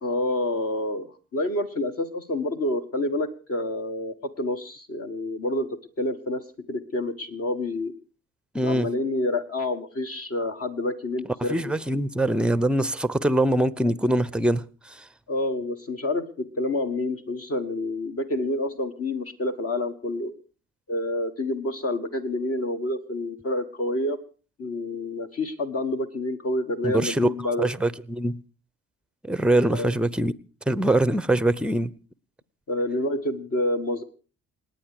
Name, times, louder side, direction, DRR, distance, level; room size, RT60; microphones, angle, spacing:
voice 1, 0.0-6.4 6.7-7.9 8.6-11.7 15.3-20.3 20.9-24.2 24.6-27.7 29.7-29.9 32.7-34.0, left 1 dB, 40° left, 1.6 m, -28 dB
voice 2, 8.5-8.9 11.5-15.0 26.8-27.3 27.6-28.4 29.2-30.3 30.7-31.9, right 1 dB, ahead, 0.8 m, -23 dB
28.0 x 9.5 x 4.9 m
figure-of-eight pair, 45°, 38 cm